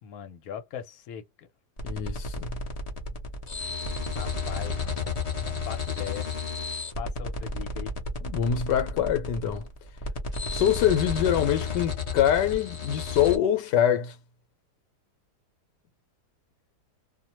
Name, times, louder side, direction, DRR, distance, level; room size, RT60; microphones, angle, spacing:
voice 1, 0.0-1.5 3.1-3.2 4.2-6.3 7.0-8.0, left 8 dB, 65° left, 1.2 m, -40 dB
voice 2, 1.8-2.5 8.2-9.7 10.5-14.2, left 10 dB, 85° left, 1.3 m, -24 dB
sound 1, 1.8-13.4, left 3 dB, 35° left, 0.6 m, -32 dB
2.8 x 2.1 x 2.9 m
omnidirectional pair, 1.8 m